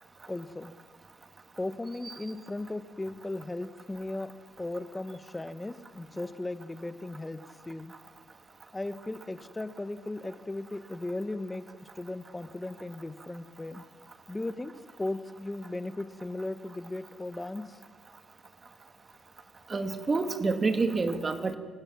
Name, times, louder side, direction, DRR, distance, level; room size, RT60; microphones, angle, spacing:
voice 1, 0.3-0.7 1.6-8.0 8.7-13.9 14.3-17.8, left 2 dB, 15° left, 12 dB, 1.2 m, -37 dB
voice 2, 19.7-21.6, right 3 dB, 30° right, 7 dB, 2.3 m, -28 dB
28.5 x 17.0 x 7.3 m, 1.5 s
cardioid pair, 90°, 0 cm